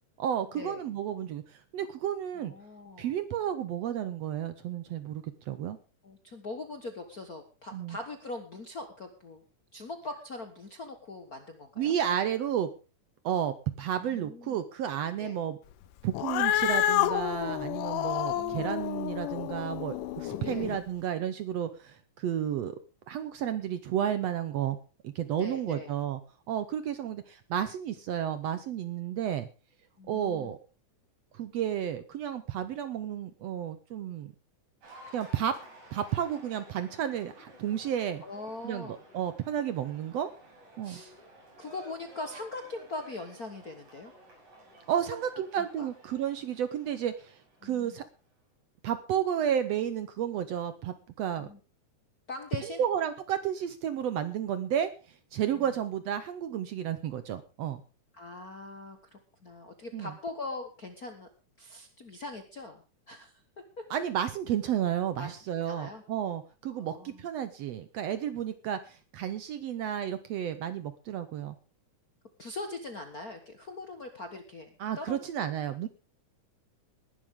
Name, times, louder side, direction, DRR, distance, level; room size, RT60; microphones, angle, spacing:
voice 1, 0.2-2.5 3.0-5.8 7.7-8.0 11.8-12.7 13.2-15.6 16.0-22.8 23.1-24.8 25.0-26.2 26.5-29.5 30.1-30.6 31.3-34.3 35.1-35.5 35.9-38.2 38.6-40.3 40.8-41.0 44.9-48.0 48.8-51.5 52.7-54.9 55.3-57.8 59.9-60.1 63.9-71.6 74.8-75.9, right 9 dB, 70° right, 11 dB, 1.7 m, -32 dB
voice 2, 2.3-3.1 6.0-9.4 9.7-11.9 14.0-14.6 15.2-15.3 18.2-18.8 20.4-20.7 25.4-25.9 30.0-30.5 38.2-39.0 40.8-41.1 41.6-44.1 45.3-45.4 45.8-45.9 47.6-48.0 51.4-51.6 52.3-52.8 55.5-55.7 58.1-61.3 61.6-63.4 63.8-64.0 65.2-65.3 65.6-66.0 66.7-67.2 72.4-75.2, left 2 dB, 45° left, 5 dB, 1.2 m, -42 dB
Cat, 16.1-20.8, left 13 dB, 90° left, 2.4 m, -29 dB
Cheering / Applause, 34.8-48.2, right 1 dB, 85° right, 7.8 m, -54 dB
19.5 x 11.5 x 3.7 m, 0.33 s
omnidirectional pair, 3.6 m